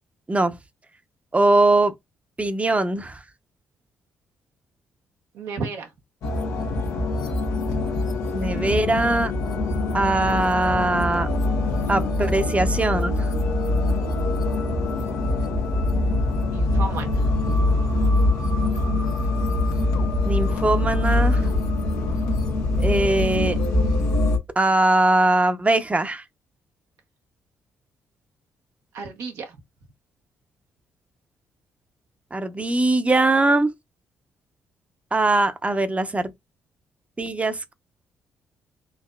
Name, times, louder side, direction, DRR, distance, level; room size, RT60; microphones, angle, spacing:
voice 1, 1.3-1.9 2.4-3.2 8.3-9.3 9.9-11.3 11.9-13.3 20.3-21.4 22.8-23.6 24.6-26.2 32.3-33.7 35.1-36.3 37.2-37.7, right 2 dB, 25° right, 0.8 m, -21 dB
voice 2, 5.3-5.9 16.3-17.5 28.9-29.6, right 4 dB, 70° right, 0.8 m, -33 dB
sound 1, 6.2-24.4, left 2 dB, 75° left, 1.0 m, -23 dB
4.7 x 2.8 x 2.3 m
hypercardioid pair, 45°, 5 cm